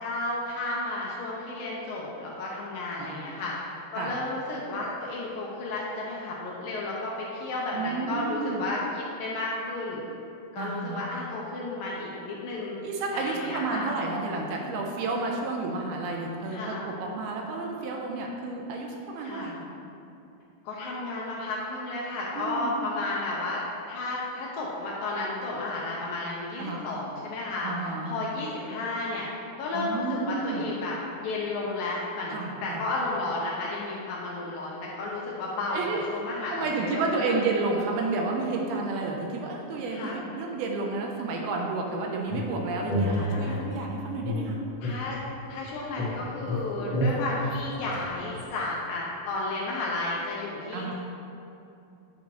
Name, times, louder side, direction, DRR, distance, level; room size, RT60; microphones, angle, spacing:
voice 1, 0.0-10.0 10.5-12.8 13.1-13.9 16.5-16.9 19.2-19.5 20.6-23.6 23.9-29.3 29.6-37.3 39.9-40.2 43.0-43.6 44.8-45.2 45.5-50.9, left 2 dB, 75° left, -4 dB, 2.2 m, -33 dB
voice 2, 7.7-8.7 10.6-11.0 12.8-19.7 22.4-22.8 26.6-26.8 27.6-28.2 29.7-30.7 32.3-32.8 35.7-36.0 36.5-44.6 46.7-47.1 50.7-50.9, right 3 dB, 80° right, 0 dB, 2.5 m, -31 dB
sound 1, 42.3-43.8 44.2-45.7 46.0-48.5, equal, 50° left, 1.9 m, -30 dB
10.5 x 5.5 x 3.0 m, 2.7 s
omnidirectional pair, 4.6 m